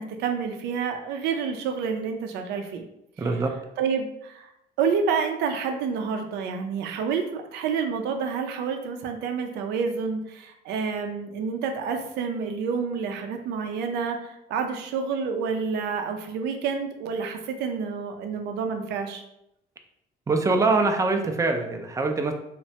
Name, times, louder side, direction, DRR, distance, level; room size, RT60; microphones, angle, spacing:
voice 1, 0.0-2.8 3.2-3.3 3.8-4.5 4.8-19.2, right 6 dB, 80° right, 5 dB, 0.5 m, -29 dB
voice 2, 3.2-3.5 20.3-22.3, right 3 dB, 20° right, 4 dB, 0.4 m, -23 dB
3.1 x 2.1 x 2.7 m, 0.81 s
cardioid pair, 110°, 17 cm